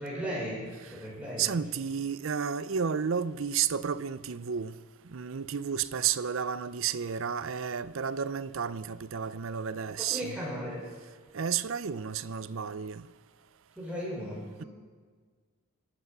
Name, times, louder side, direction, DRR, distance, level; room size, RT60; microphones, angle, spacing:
voice 1, 0.0-1.5 10.0-10.9 13.8-14.7, equal, 5° right, 5.7 m, -36 dB
voice 2, 1.4-4.8 5.1-10.4 11.3-13.1, right 7 dB, 65° right, 0.5 m, -32 dB
24.0 x 8.2 x 6.7 m
head